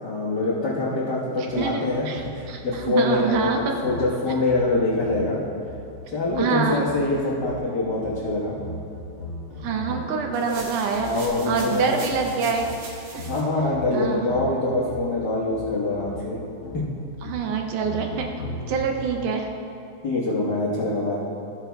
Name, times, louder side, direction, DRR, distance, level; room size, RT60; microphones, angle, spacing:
voice 1, 0.0-3.5 3.8-5.4 6.1-8.5 9.6-10.0 10.4-10.6 11.0-12.0 12.3-12.5 13.3-16.4 16.7-16.8 18.4-18.7 20.0-21.2, left 2 dB, 85° left, -7 dB, 0.9 m, -25 dB
voice 2, 1.4-3.7 6.4-6.9 9.6-11.1 11.5-12.7 13.1-13.2 13.9-14.3 17.2-18.3 18.7-19.5, right 5 dB, 75° right, 3 dB, 2.0 m, -26 dB
sound 1, 1.5-10.2 10.9-19.5, left 1 dB, 40° left, 3.3 m, -39 dB
sound 2, 10.3-13.4, right 3 dB, 55° right, 1.6 m, -40 dB
15.0 x 5.8 x 4.5 m, 2.6 s
omnidirectional pair, 4.0 m